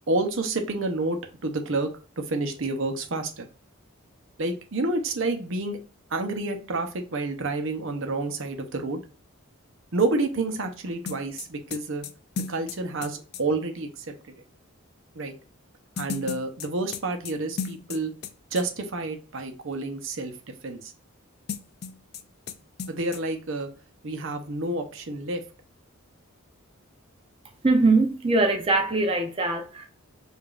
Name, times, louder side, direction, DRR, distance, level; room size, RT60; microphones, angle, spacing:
voice 1, 0.1-1.9 2.2-3.5 4.4-5.8 6.1-9.0 9.9-12.1 12.5-14.1 15.2-15.3 16.0-18.1 18.5-20.3 20.6-20.9 22.9-23.7 24.0-25.4, right 2 dB, 65° right, 0.7 m, -29 dB
sound 1, 11.1-13.4 16.0-18.3 18.6-18.7 21.5-22.2 22.5-22.6 22.8-23.2, left 6 dB, 45° left, 0.3 m, -35 dB
voice 2, 27.6-29.9, right 3 dB, 25° right, 0.5 m, -22 dB
4.9 x 2.5 x 2.4 m
head